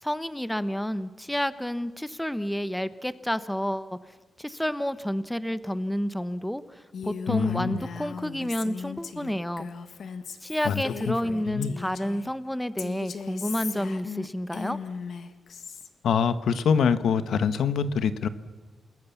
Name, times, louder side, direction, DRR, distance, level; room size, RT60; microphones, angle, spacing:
voice 1, 0.0-9.7 10.4-14.8, equal, 5° left, 13 dB, 0.9 m, -30 dB
Female speech woman speaking, 6.9-12.3 12.8-15.9, left 6 dB, 65° left, 1.7 m, -38 dB
voice 2, 7.3-7.8 10.6-11.1 11.4-11.7 16.0-18.3, left 6 dB, 80° left, 12 dB, 1.2 m, -25 dB
29.0 x 20.5 x 7.1 m, 1.3 s
wide cardioid pair, 120°, 0 cm